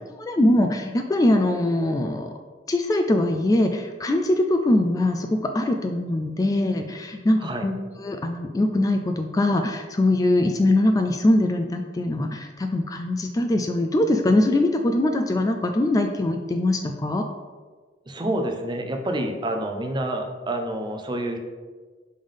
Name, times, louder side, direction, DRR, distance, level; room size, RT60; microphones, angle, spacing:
voice 1, 0.2-2.3 2.7-17.2, left 1 dB, 20° left, 5 dB, 0.3 m, -22 dB
voice 2, 18.1-21.4, right 1 dB, 25° right, 4 dB, 0.6 m, -28 dB
5.4 x 3.5 x 5.3 m, 1.4 s
head